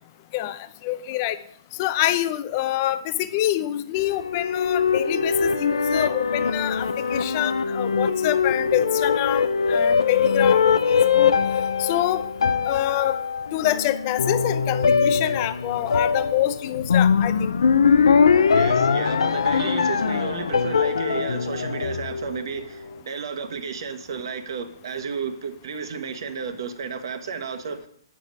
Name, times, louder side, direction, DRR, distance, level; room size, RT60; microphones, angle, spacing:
voice 1, 0.3-1.4 1.7-11.4 11.8-12.3 12.7-13.2 13.5-17.6, left 14 dB, 30° left, 13 dB, 0.5 m, -26 dB
sound 1, 4.0-22.5, left 6 dB, 85° left, 0.6 m, -22 dB
voice 2, 18.5-27.9, right 5 dB, 60° right, 8 dB, 1.2 m, -32 dB
8.7 x 6.3 x 5.3 m, 0.64 s
hypercardioid pair, 155°, 3 cm